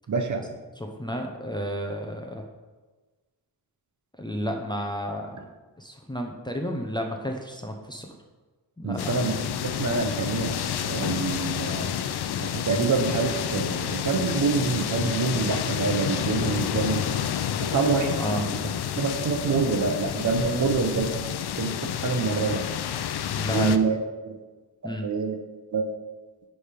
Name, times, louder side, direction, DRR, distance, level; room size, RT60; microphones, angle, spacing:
voice 1, 0.1-0.5 8.8-9.3 9.6-11.9 12.4-17.0 17.6-18.2 18.9-21.1 21.6-22.6 23.5-24.0 24.2-24.4 24.8-25.4 25.7-25.8, right 4 dB, 45° right, 5 dB, 0.8 m, -26 dB
voice 2, 0.8-2.4 4.2-5.4 5.8-8.1 8.8-9.1 18.2-18.5 23.3-23.7 24.8-25.1, equal, 10° left, 1 dB, 0.6 m, -31 dB
sound 1, 9.0-23.8, left 9 dB, 70° left, 0.5 m, -29 dB
9.9 x 3.4 x 5.1 m, 1.3 s
wide cardioid pair, 145°, 40 cm